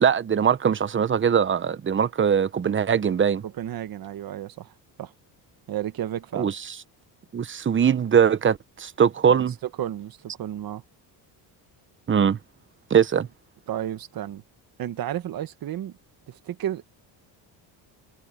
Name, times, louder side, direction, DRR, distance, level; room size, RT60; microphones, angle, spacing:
voice 1, 0.0-3.4 6.4-6.5 7.3-9.5 12.1-12.4 12.9-13.3, right 7 dB, 25° right, 0.9 m, -21 dB
voice 2, 3.4-4.7 5.0-5.1 5.7-6.5 9.6-10.8 13.7-14.4 14.8-15.9 16.3-16.9, right 11 dB, 55° right, 1.5 m, -32 dB
cardioid pair, 130°, 43 cm